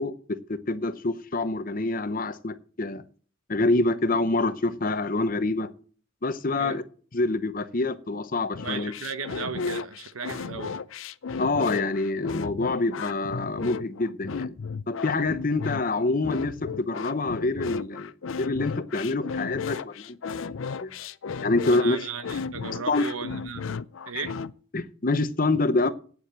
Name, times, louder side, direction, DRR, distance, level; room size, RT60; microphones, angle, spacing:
voice 1, 0.0-3.0 3.5-5.7 6.2-6.8 7.1-8.9 11.4-14.5 14.9-18.1 18.4-20.9 21.4-22.0 22.9-23.0 24.7-25.9, left 2 dB, 40° left, 0.8 m, -26 dB
sound 1, 8.5-24.5, left 5 dB, 70° left, 0.5 m, -34 dB
voice 2, 8.6-10.8 21.7-23.7 24.1-24.3, right 5 dB, 85° right, 1.1 m, -36 dB
9.3 x 7.1 x 8.1 m
head